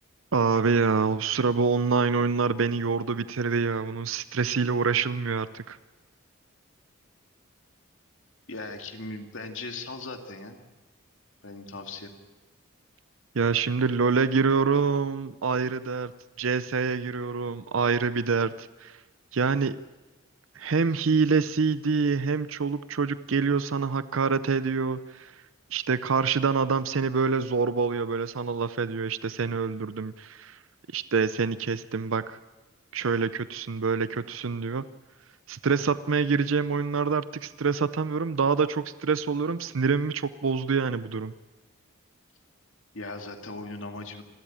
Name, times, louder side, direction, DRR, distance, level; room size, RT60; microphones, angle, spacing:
voice 1, 0.3-5.8 13.3-16.1 16.4-19.0 19.3-19.8 20.6-25.3 25.7-30.6 30.9-32.4 32.9-34.8 35.5-41.3, right 5 dB, 75° right, 14 dB, 0.6 m, -26 dB
voice 2, 8.5-10.6 11.4-12.1 42.9-44.2, left 3 dB, 70° left, 4 dB, 2.4 m, -38 dB
27.5 x 13.5 x 8.8 m, 1.2 s
head